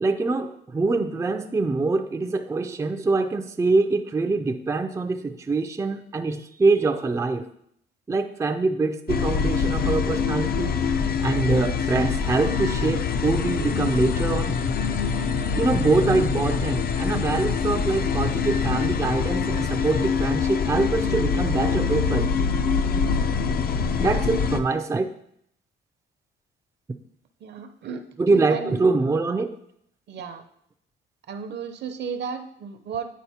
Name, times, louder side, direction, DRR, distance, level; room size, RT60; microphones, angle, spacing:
voice 1, 0.0-7.5 8.1-10.8 11.2-14.6 15.5-22.3 24.0-25.1 28.2-29.6, right 3 dB, 15° right, 7 dB, 0.4 m, -24 dB
sound 1, 9.1-24.6, left 5 dB, 50° left, 0.5 m, -24 dB
voice 2, 27.4-28.8 30.1-30.4 31.3-33.2, right 6 dB, 60° right, 8 dB, 0.7 m, -34 dB
9.2 x 4.0 x 2.8 m, 0.70 s
cardioid pair, 90°, 20 cm